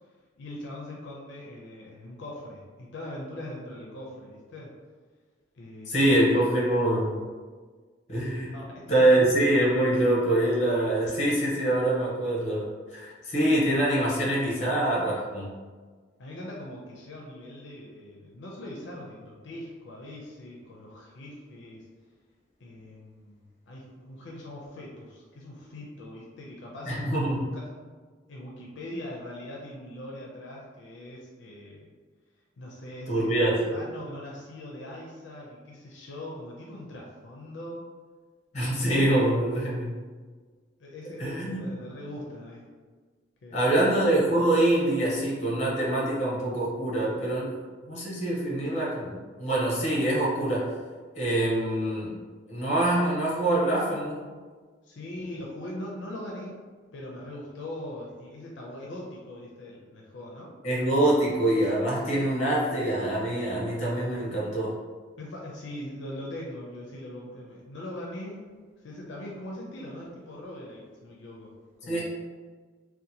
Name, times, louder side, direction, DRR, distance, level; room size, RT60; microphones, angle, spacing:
voice 1, 0.4-4.7 5.5-6.1 8.5-9.3 16.2-21.9 22.6-27.7 28.3-31.9 32.6-33.4 33.7-37.9 40.8-42.7 43.4-43.8 54.8-56.5 56.9-60.5 65.2-68.4 68.8-71.5 71.8-72.0, left 1 dB, 75° left, -3 dB, 0.5 m, -41 dB
voice 2, 5.9-7.2 8.1-8.5 8.9-15.5 26.9-27.5 33.1-33.8 38.5-40.0 41.2-41.6 43.5-47.6 47.8-50.7 51.2-52.2 52.5-54.3 60.6-64.8 71.9-72.0, right 1 dB, 35° left, -5 dB, 0.8 m, -25 dB
2.7 x 2.1 x 2.7 m, 1.5 s
head